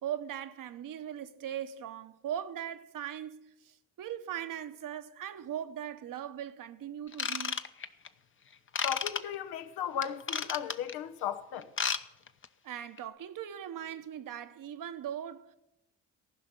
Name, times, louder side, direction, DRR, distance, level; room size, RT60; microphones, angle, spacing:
voice 1, 0.0-7.6 12.6-15.5, right 10 dB, 60° right, 1.1 m, -39 dB
Ratchet pawl / Tools, 7.1-8.1 8.7-9.2 10.0-10.9 11.6-12.0 12.3-12.5 13.0-13.1, left 6 dB, 35° left, 0.9 m, -32 dB
voice 2, 8.8-11.7, left 9 dB, 75° left, 1.1 m, -36 dB
15.0 x 5.7 x 9.6 m
hypercardioid pair, 55°, 37 cm